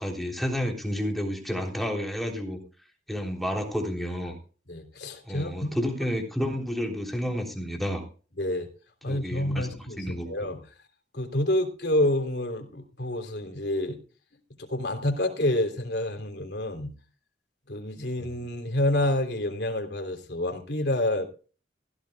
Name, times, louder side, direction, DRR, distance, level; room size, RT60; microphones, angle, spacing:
voice 1, 0.0-2.6 3.1-4.4 5.3-8.0 9.1-10.3 18.2-18.3, equal, ahead, 2 dB, 3.5 m, -30 dB
voice 2, 4.7-5.7 8.4-8.7 9.0-10.6 11.1-14.0 14.6-16.9 17.7-21.3, left 1 dB, 65° left, 4 dB, 3.3 m, -28 dB
16.5 x 14.5 x 2.4 m, 0.36 s
head